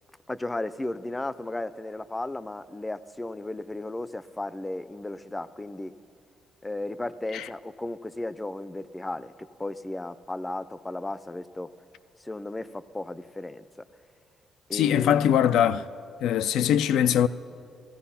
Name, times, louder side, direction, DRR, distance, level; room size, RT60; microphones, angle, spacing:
voice 1, 0.3-5.9 6.6-9.3 9.6-11.7 12.2-13.7 14.7-15.4, left 2 dB, 15° left, 0.5 m, -35 dB
voice 2, 14.7-15.8 16.2-17.3, left 10 dB, 85° left, 0.4 m, -22 dB
16.0 x 15.0 x 5.7 m
cardioid pair, 90°, 0 cm